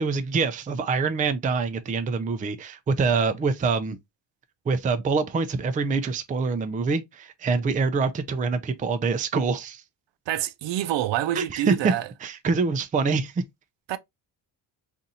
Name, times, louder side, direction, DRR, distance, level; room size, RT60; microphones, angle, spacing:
voice 1, 0.0-4.0 4.7-9.8 11.3-11.9 12.2-13.4, right 4 dB, 20° right, 0.3 m, -25 dB
voice 2, 10.3-12.1 13.9-14.0, right 12 dB, 75° right, 0.5 m, -27 dB
3.9 x 2.6 x 2.7 m
cardioid pair, 125°, 44 cm